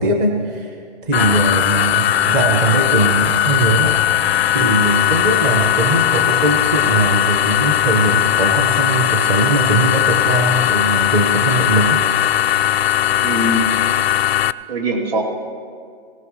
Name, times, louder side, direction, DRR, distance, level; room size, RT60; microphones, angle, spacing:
voice 1, 0.0-4.0 4.5-12.0, right 2 dB, 20° right, 4 dB, 0.6 m, -20 dB
sound 1, 1.1-14.5, left 12 dB, 75° left, 0.5 m, -18 dB
voice 2, 13.2-13.7 14.7-15.3, right 1 dB, 70° right, 0 dB, 2.7 m, -22 dB
20.0 x 17.5 x 3.1 m, 2.2 s
hypercardioid pair, 160°, 31 cm